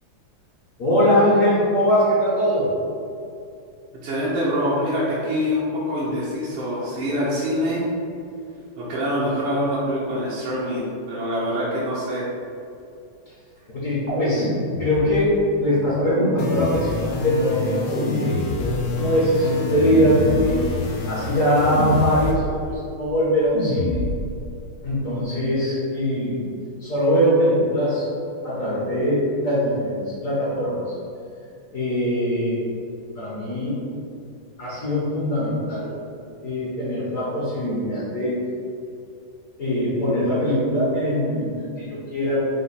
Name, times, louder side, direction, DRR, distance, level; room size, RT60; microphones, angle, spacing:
voice 1, 0.8-2.7 13.7-14.5 14.8-20.6 21.1-24.0 24.8-26.4 26.8-28.1 28.4-30.9 31.7-32.6 33.2-33.8 34.6-36.0 36.4-38.4 39.6-42.4, equal, 50° left, -8 dB, 1.0 m, -22 dB
voice 2, 4.0-7.8 8.8-12.3, equal, 80° right, -7 dB, 1.5 m, -25 dB
sound 1, 14.1-15.3 16.0-17.2 17.9-19.0 19.8-20.8 21.7-22.7 23.5-24.4, equal, 35° right, 0.7 m, -27 dB
sound 2, 16.4-22.3, left 3 dB, 85° left, 1.5 m, -28 dB
5.1 x 2.2 x 4.1 m, 2.5 s
omnidirectional pair, 2.3 m